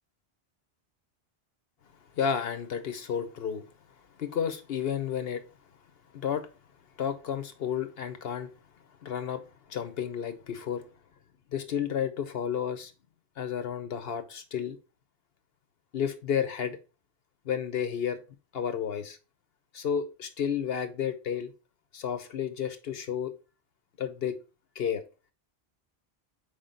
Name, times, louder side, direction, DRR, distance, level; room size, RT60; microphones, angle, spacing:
voice 1, 2.2-3.6 4.2-5.4 6.1-6.5 7.0-8.5 9.0-9.4 9.7-10.8 11.5-12.9 13.4-14.8 15.9-16.8 17.4-18.2 18.5-19.2 19.7-21.5 21.9-23.3 24.0-24.3 24.8-25.0, left 8 dB, 70° left, 1.1 m, -31 dB
4.9 x 3.7 x 5.1 m
omnidirectional pair, 1.1 m